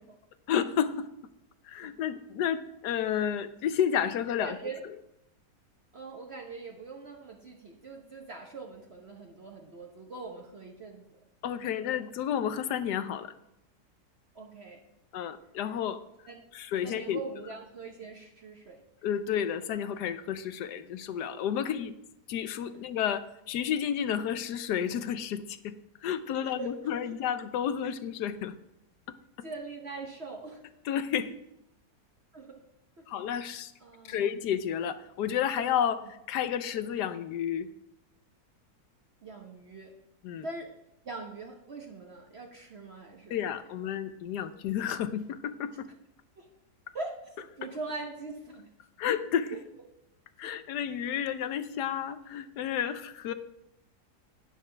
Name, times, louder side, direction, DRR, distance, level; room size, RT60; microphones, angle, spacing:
voice 1, 0.5-1.1 1.6-4.6 11.4-13.3 15.1-16.0 16.5-17.2 19.0-21.9 22.3-25.7 26.0-28.5 30.8-31.3 33.1-33.7 34.0-37.7 40.2-40.5 43.3-45.9 49.0-49.6 50.4-53.3, left 9 dB, 90° left, 12 dB, 1.3 m, -31 dB
voice 2, 4.4-4.8 5.9-11.0 14.3-14.8 16.3-16.4 16.8-18.8 26.4-27.0 29.4-30.6 32.3-32.6 33.8-34.2 39.2-39.9 40.4-40.7 41.0-43.6 46.4-46.5 46.9-48.7 49.5-49.6 50.4-50.5, right 3 dB, 45° right, 1 dB, 1.1 m, -42 dB
11.5 x 9.6 x 3.4 m, 0.83 s
omnidirectional pair, 1.7 m